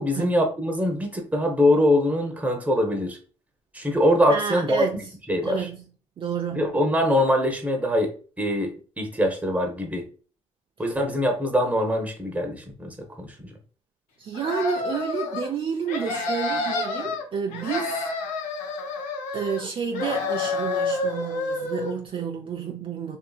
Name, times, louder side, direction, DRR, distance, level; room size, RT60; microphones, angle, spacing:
voice 1, 0.0-3.2 3.7-4.8 5.3-5.7 6.5-10.0 10.8-13.5, left 1 dB, 10° right, 0.9 m, -23 dB
voice 2, 4.3-5.1 5.4-5.9 6.2-6.7 10.9-11.0 14.2-18.1 19.3-23.2, right 6 dB, 45° right, 0.4 m, -30 dB
sound 1, 14.3-15.5 15.9-17.2 17.5-19.7 19.9-21.9, left 3 dB, 85° left, 0.6 m, -29 dB
2.6 x 2.6 x 2.3 m
supercardioid pair, 65°, 13 cm